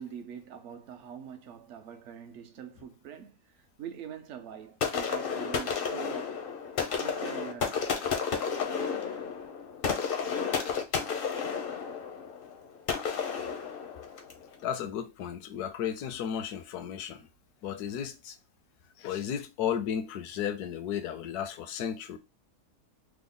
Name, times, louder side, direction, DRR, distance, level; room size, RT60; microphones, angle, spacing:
voice 1, 0.0-6.4 7.0-7.8 11.0-11.2, right 8 dB, 65° right, 0.8 m, -44 dB
sound 1, 4.8-14.5, left 6 dB, 60° left, 0.5 m, -32 dB
voice 2, 9.9-10.4 14.6-17.3 17.6-18.4 19.0-22.2, left 9 dB, 80° left, 1.1 m, -34 dB
3.4 x 2.0 x 3.6 m
omnidirectional pair, 1.7 m